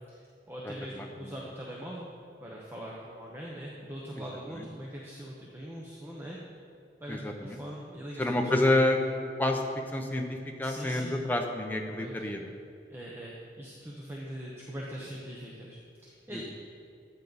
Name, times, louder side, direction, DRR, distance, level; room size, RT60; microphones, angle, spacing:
voice 1, 0.1-2.1 2.4-6.4 7.0-8.2 8.5-8.6 10.6-11.1 11.9-12.3 12.9-16.4, equal, 15° right, -4 dB, 0.9 m, -42 dB
voice 2, 0.6-1.3 4.2-4.3 4.5-4.7 7.1-7.6 8.2-9.6 9.9-12.5 16.3-16.4, left 1 dB, 10° left, 2 dB, 0.8 m, -29 dB
13.5 x 8.4 x 4.1 m, 2.5 s
head